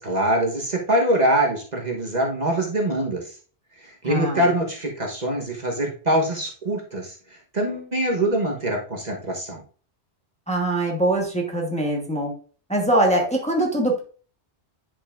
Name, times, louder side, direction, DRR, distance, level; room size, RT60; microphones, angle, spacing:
voice 1, 0.0-3.2 3.8-9.6, right 1 dB, 40° right, 0 dB, 1.3 m, -24 dB
voice 2, 4.0-4.4 10.5-12.3 12.7-14.0, right 1 dB, 5° left, 0 dB, 1.2 m, -22 dB
10.5 x 5.4 x 2.5 m, 0.39 s
omnidirectional pair, 1.2 m